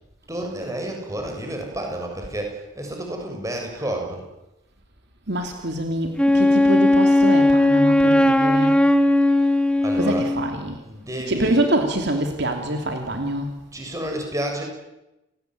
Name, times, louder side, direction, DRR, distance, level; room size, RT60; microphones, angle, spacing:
voice 1, 0.3-4.2 9.4-9.5 9.8-10.3 10.8-11.6 13.7-14.6, right 1 dB, 15° right, 2 dB, 7.0 m, -30 dB
voice 2, 5.3-8.8 9.9-10.8 11.2-13.6, right 1 dB, 55° right, 4 dB, 3.0 m, -25 dB
Wind instrument woodwind instrument, 6.2-10.5, left 1 dB, 5° left, 1.6 m, -17 dB
30.0 x 19.0 x 9.5 m, 0.96 s
head